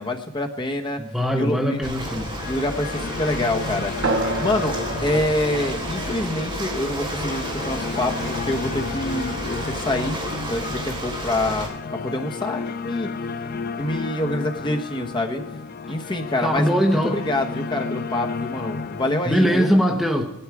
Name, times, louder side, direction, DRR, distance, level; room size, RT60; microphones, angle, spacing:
voice 1, 0.0-1.0 1.3-1.8 2.4-3.9 4.4-10.2 10.4-11.7 12.0-13.1 13.8-15.4 15.9-19.7, left 1 dB, 20° left, 2 dB, 1.1 m, -26 dB
voice 2, 1.0-2.3 16.4-17.2 19.2-20.2, equal, ahead, 2 dB, 0.9 m, -21 dB
sound 1, 1.6-19.6, left 4 dB, 45° left, 0.4 m, -32 dB
Ocean, 1.8-11.7, right 1 dB, 25° right, 3.2 m, -32 dB
sound 2, 4.0-9.1, right 2 dB, 60° right, 1.0 m, -31 dB
18.0 x 12.0 x 4.8 m, 0.86 s
head